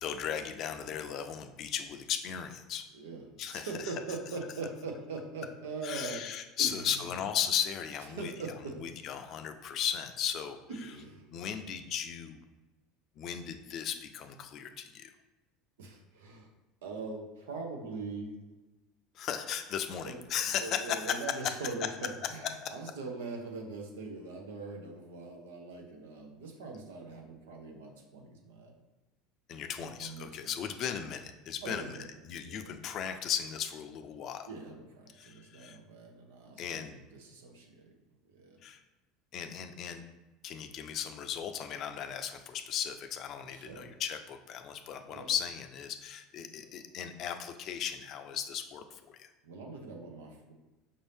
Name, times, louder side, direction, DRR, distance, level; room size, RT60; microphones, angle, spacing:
voice 1, 0.0-2.8 3.4-3.7 5.8-8.3 8.8-10.6 11.3-12.4 13.2-15.1 19.1-21.2 22.6-22.7 29.5-32.0 32.2-34.5 35.1-35.8 36.6-36.9 38.6-38.8 39.3-40.0 40.4-49.3, left 9 dB, 50° left, 7 dB, 0.4 m, -36 dB
voice 2, 2.9-6.2 6.6-7.1 8.1-8.8 10.7-11.3 15.8-16.5 16.8-18.4 20.0-20.2 20.5-28.7 29.8-30.5 31.6-32.1 32.4-32.7 34.5-37.9 38.3-38.6 43.5-43.9 45.1-45.3 49.4-50.5, right 3 dB, 90° right, 2 dB, 0.8 m, -42 dB
5.2 x 2.7 x 3.4 m, 1.1 s
supercardioid pair, 95°, 0 cm